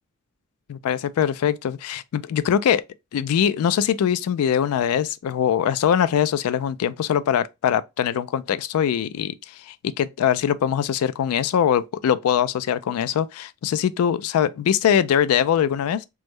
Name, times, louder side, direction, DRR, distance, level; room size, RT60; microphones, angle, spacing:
voice 1, 0.7-2.8 3.1-9.3 9.7-16.1, left 9 dB, 75° left, 0.3 m, -22 dB
3.4 x 2.1 x 3.0 m
head